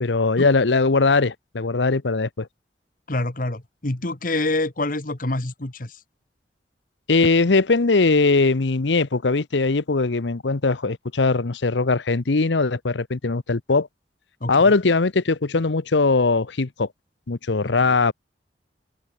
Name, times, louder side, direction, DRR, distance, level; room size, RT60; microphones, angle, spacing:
voice 1, 0.0-2.5 7.1-13.9 14.5-16.9 17.3-18.1, left 3 dB, 85° left, 0.9 m, -20 dB
voice 2, 3.1-6.0 14.4-14.7 17.6-18.0, left 2 dB, 50° left, 1.7 m, -27 dB
head